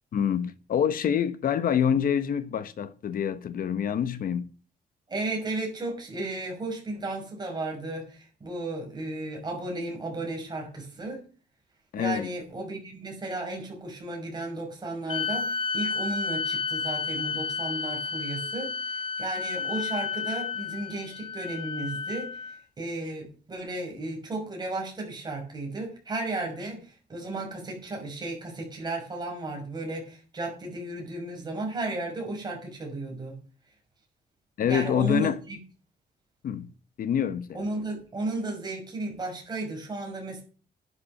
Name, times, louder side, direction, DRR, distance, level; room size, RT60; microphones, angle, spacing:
voice 1, 0.1-4.4 11.9-12.3 34.6-35.4 36.4-36.7 37.0-37.7, left 8 dB, 55° left, 1.1 m, -26 dB
voice 2, 5.1-11.2 12.0-33.4 34.6-35.6 37.5-40.4, right 2 dB, 25° right, 5.6 m, -34 dB
sound 1, 15.1-22.6, left 5 dB, 30° left, 0.6 m, -31 dB
10.5 x 8.5 x 6.5 m
cardioid pair, 150°, 17 cm